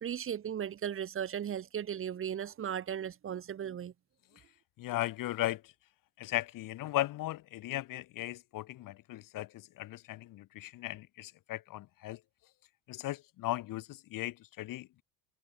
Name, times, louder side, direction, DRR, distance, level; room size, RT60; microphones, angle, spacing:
voice 1, 0.0-3.9, right 9 dB, 30° right, 1.3 m, -36 dB
voice 2, 4.8-5.7 6.2-12.2 12.9-15.0, left 15 dB, 50° left, 1.3 m, -37 dB
cardioid pair, 140°, 43 cm